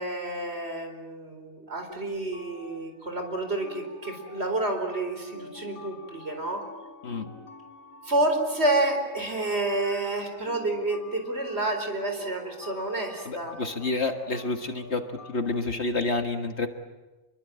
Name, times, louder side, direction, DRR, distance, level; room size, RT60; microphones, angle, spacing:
voice 1, 0.0-6.6 8.0-13.6, right 2 dB, 50° right, 5 dB, 4.7 m, -29 dB
sound 1, 1.9-15.6, left 3 dB, 75° left, 3.5 m, -47 dB
voice 2, 13.3-15.0 15.3-16.7, left 3 dB, 50° left, 6 dB, 1.9 m, -29 dB
27.5 x 22.5 x 8.8 m, 1.1 s
omnidirectional pair, 1.5 m